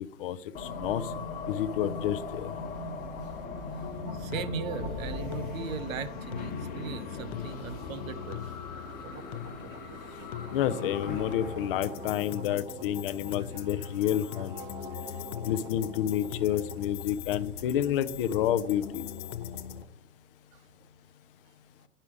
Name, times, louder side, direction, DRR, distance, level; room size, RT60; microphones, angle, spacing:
voice 1, 0.2-1.1 1.5-2.5 10.5-14.6 15.4-19.1, left 10 dB, 40° left, 12 dB, 0.5 m, -29 dB
sound 1, 0.5-12.5, left 4 dB, 20° left, 1.0 m, -39 dB
voice 2, 3.2-3.8 4.1-8.5 14.6-15.2, right 7 dB, 65° right, 12 dB, 1.1 m, -39 dB
sound 2, 3.3-19.8, right 2 dB, 10° right, 0.5 m, -47 dB
sound 3, 3.8-19.8, left 12 dB, 75° left, 0.8 m, -41 dB
10.5 x 5.6 x 4.9 m, 0.85 s
hypercardioid pair, 140°, 43 cm